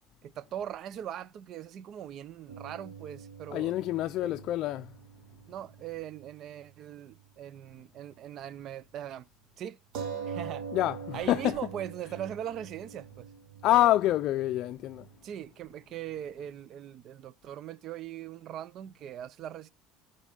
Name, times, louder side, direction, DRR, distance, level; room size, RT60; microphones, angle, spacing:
voice 1, 0.2-3.7 4.2-4.3 5.5-9.3 9.6-9.8 10.3-10.7 11.1-13.3 13.7-13.9 15.2-19.7, right 10 dB, 50° right, 0.5 m, -40 dB
sound 1, 2.5-6.4 6.6-6.7 9.9-15.2, right 6 dB, 75° right, 1.4 m, -43 dB
voice 2, 3.5-4.9 10.7-11.6 13.6-15.1, left 14 dB, 55° left, 0.4 m, -27 dB
14.5 x 5.2 x 3.8 m
cardioid pair, 130°, 0 cm